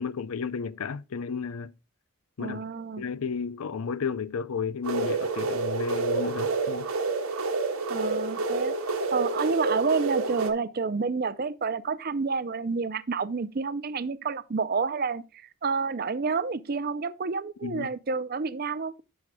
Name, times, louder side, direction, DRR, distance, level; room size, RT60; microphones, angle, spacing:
voice 1, 0.0-1.7 2.4-2.6 3.0-6.9 17.6-17.9, left 5 dB, 80° left, 0.5 m, -32 dB
voice 2, 2.4-3.0 7.9-8.7 9.1-19.0, right 4 dB, 45° right, 0.5 m, -29 dB
sound 1, 4.8-10.5, right 3 dB, 85° right, 1.3 m, -28 dB
12.0 x 6.4 x 2.3 m
head